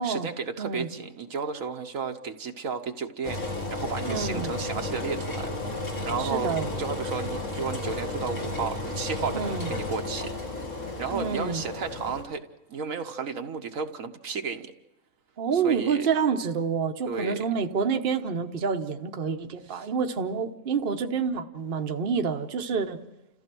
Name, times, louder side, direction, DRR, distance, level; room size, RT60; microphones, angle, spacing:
voice 1, 0.0-10.3 11.0-12.4 12.7-14.7 15.5-16.1 17.1-17.4 19.7-19.9, right 5 dB, 65° right, 6 dB, 1.3 m, -33 dB
voice 2, 0.6-0.9 4.1-4.5 6.2-6.7 9.3-9.7 11.1-11.6 15.4-23.0, right 6 dB, 40° right, 5 dB, 1.1 m, -28 dB
Engine, 3.2-12.2, left 2 dB, 55° left, 2.8 m, -33 dB
29.5 x 15.0 x 6.1 m, 0.99 s
omnidirectional pair, 1.6 m